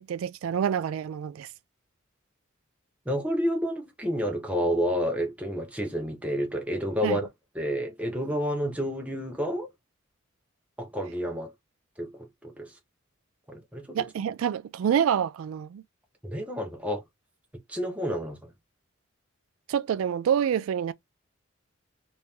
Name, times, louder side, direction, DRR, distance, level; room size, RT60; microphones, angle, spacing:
voice 1, 0.0-1.5 7.0-7.2 13.9-15.8 19.7-20.9, right 8 dB, 80° right, 0.3 m, -27 dB
voice 2, 3.1-7.3 7.5-9.7 10.8-11.5 12.0-12.1 12.4-12.7 13.5-14.0 16.2-17.0 17.7-18.4, equal, 5° right, 0.8 m, -29 dB
2.9 x 2.7 x 3.5 m
head